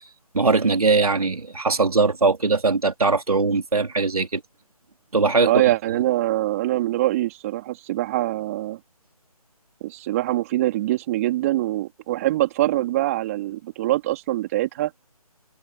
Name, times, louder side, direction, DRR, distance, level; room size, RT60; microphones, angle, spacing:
voice 1, 0.3-4.4 5.1-5.6, right 4 dB, 70° right, 3.3 m, -20 dB
voice 2, 5.5-8.8 9.8-14.9, right 15 dB, 25° right, 3.6 m, -23 dB
figure-of-eight pair, 150°, 20 cm